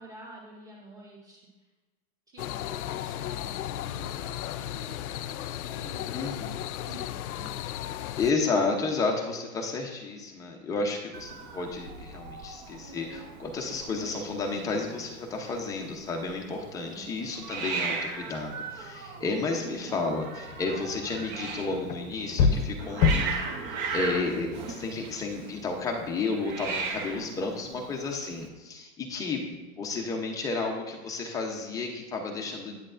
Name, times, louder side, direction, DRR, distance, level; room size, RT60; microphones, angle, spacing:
voice 1, 0.0-1.4 2.3-7.6 16.8-17.3 27.1-27.9, right 2 dB, 10° right, -4 dB, 1.7 m, -49 dB
sound 1, 2.4-8.3, left 12 dB, 80° left, 0.5 m, -35 dB
voice 2, 6.1-6.6 8.2-23.6 23.9-32.8, left 3 dB, 10° left, 1 dB, 0.6 m, -32 dB
Hiss, 11.1-28.5, right 5 dB, 35° right, 0.9 m, -38 dB
sound 2, 20.5-25.3, left 5 dB, 40° left, 0.8 m, -29 dB
8.9 x 8.7 x 2.5 m, 1.2 s
hypercardioid pair, 150°, 43 cm